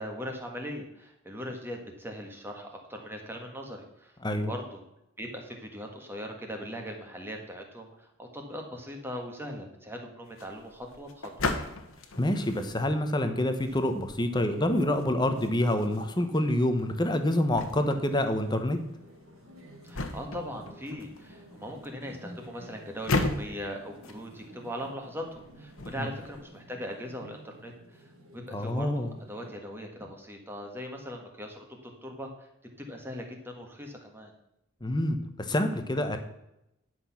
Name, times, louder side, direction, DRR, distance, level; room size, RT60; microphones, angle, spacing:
voice 1, 0.0-4.8 5.2-11.5 19.8-32.5 32.8-34.3, equal, 10° right, 2 dB, 1.5 m, -40 dB
sound 1, 10.3-26.4, left 2 dB, 70° left, 1.3 m, -38 dB
voice 2, 12.2-18.8 28.5-29.1 34.8-36.2, left 1 dB, 20° left, 8 dB, 0.9 m, -27 dB
sound 2, 14.5-29.5, equal, 70° right, 3.5 m, -52 dB
11.0 x 6.2 x 5.8 m, 0.86 s
head